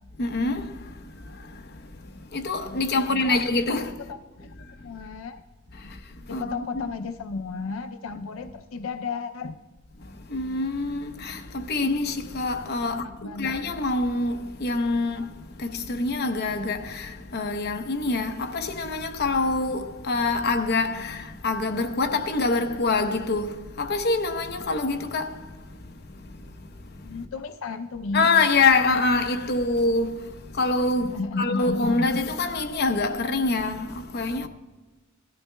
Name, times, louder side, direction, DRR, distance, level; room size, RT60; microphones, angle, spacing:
voice 1, 0.2-0.7 2.3-4.0 6.3-6.4 6.7-6.9 10.3-15.3 15.6-25.4 28.1-34.5, left 3 dB, 55° left, 0.8 m, -25 dB
voice 2, 2.7-3.4 4.1-4.5 4.8-5.4 5.8-5.9 6.3-9.6 12.9-13.6 27.0-28.3 31.0-32.2, left 4 dB, 85° left, 0.5 m, -33 dB
18.0 x 13.0 x 2.2 m
head